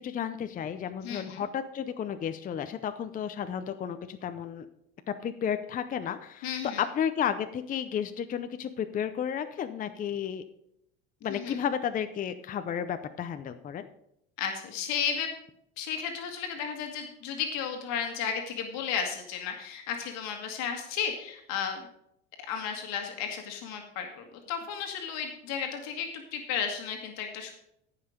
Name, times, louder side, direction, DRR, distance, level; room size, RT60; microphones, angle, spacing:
voice 1, 0.0-4.7 5.1-10.4 11.2-13.9, left 8 dB, 30° left, 9 dB, 0.6 m, -32 dB
voice 2, 1.0-1.4 6.4-6.8 11.3-11.6 14.4-15.3 15.8-21.8 22.5-27.5, left 7 dB, 65° left, 4 dB, 1.8 m, -33 dB
14.5 x 5.8 x 5.1 m, 0.78 s
cardioid pair, 125°, 29 cm